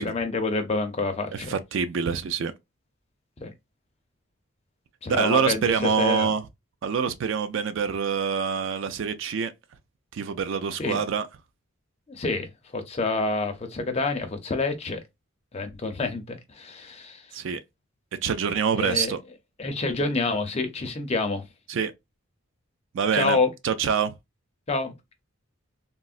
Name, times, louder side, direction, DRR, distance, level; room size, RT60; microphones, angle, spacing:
voice 1, 0.0-1.6 3.4-3.5 5.0-6.3 10.8-11.0 12.1-15.0 15.5-17.2 18.8-19.1 19.6-21.4 23.1-23.5 24.7-24.9, left 3 dB, 30° left, 0.5 m, -27 dB
voice 2, 1.3-2.5 5.1-6.4 6.8-9.5 10.1-11.3 17.3-17.6 18.2-19.2 21.7-21.9 22.9-23.4 23.6-24.1, right 6 dB, 60° right, 0.3 m, -25 dB
3.6 x 2.0 x 2.4 m
head